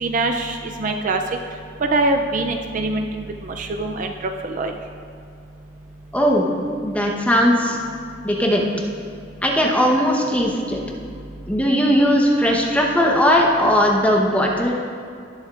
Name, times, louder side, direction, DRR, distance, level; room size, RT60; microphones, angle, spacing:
voice 1, 0.0-1.2 1.8-4.1 4.4-4.7, right 2 dB, 40° right, 4 dB, 0.4 m, -23 dB
voice 2, 6.1-6.5 6.8-7.8 8.2-8.7 9.4-10.8 11.5-14.7, equal, 5° left, -1 dB, 1.0 m, -18 dB
18.5 x 7.1 x 2.5 m, 2.3 s
head